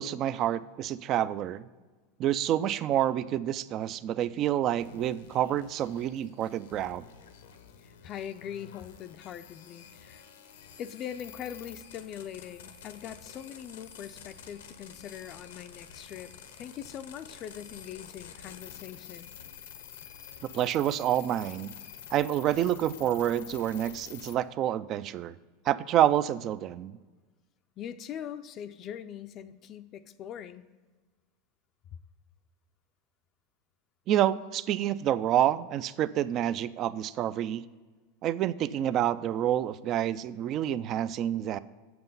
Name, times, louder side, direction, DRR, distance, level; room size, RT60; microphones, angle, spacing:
voice 1, 0.0-1.7 2.2-7.0 20.5-21.7 22.1-25.3 25.7-26.9 34.1-37.6 38.2-41.6, right 11 dB, 40° right, 17 dB, 0.4 m, -28 dB
sound 1, 4.8-24.4, left 8 dB, 85° left, 0.8 m, -49 dB
voice 2, 7.8-10.3 10.8-19.3 27.8-30.6, left 9 dB, 40° left, 10 dB, 0.4 m, -42 dB
7.7 x 7.0 x 5.5 m, 1.3 s
supercardioid pair, 120°, 0 cm